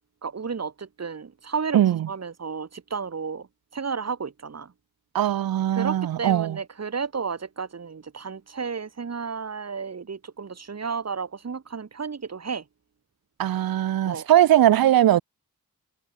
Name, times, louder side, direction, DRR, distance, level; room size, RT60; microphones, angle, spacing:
voice 1, 0.2-1.8 2.1-3.5 3.7-4.7 5.7-12.6 14.0-14.3, right 5 dB, 45° right, 2.1 m, -32 dB
voice 2, 1.7-2.1 5.1-6.6 13.4-15.2, right 12 dB, 75° right, 0.6 m, -20 dB
wide cardioid pair, 110°, 36 cm